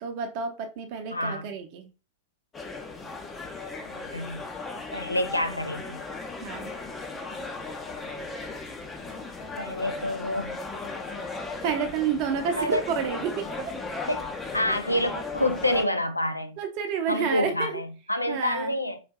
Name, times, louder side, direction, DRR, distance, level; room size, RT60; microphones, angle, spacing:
voice 1, 0.0-1.9 6.4-6.7 11.6-13.7 16.6-17.8 18.3-18.7, right 6 dB, 45° right, 0.7 m, -30 dB
voice 2, 1.1-1.5 3.8-4.4 4.9-6.0 9.6-10.6 12.6-12.8 14.1-14.3 14.5-16.6 17.1-19.0, left 1 dB, 85° left, 0.4 m, -28 dB
sound 1, 2.5-15.9, left 3 dB, 20° left, 0.6 m, -37 dB
4.7 x 2.6 x 2.3 m
figure-of-eight pair, 90°, 0 cm